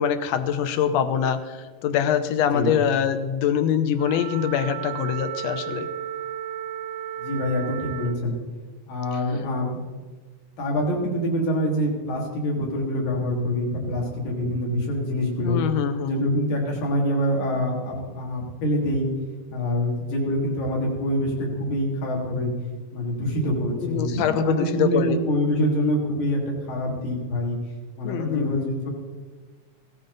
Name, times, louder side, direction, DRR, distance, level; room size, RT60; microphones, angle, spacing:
voice 1, 0.0-1.6 1.8-5.9 15.4-16.2 23.8-25.2 28.0-28.7, left 8 dB, 70° left, 9 dB, 1.7 m, -24 dB
Wind instrument woodwind instrument, 4.0-8.3, right 11 dB, 80° right, 2.7 m, -34 dB
voice 2, 7.2-8.4 8.9-9.8 10.6-15.6 16.1-19.1 19.5-22.5 22.9-27.6 28.0-28.9, equal, 85° left, -1 dB, 4.5 m, -25 dB
16.0 x 14.5 x 4.1 m, 1.3 s
omnidirectional pair, 3.9 m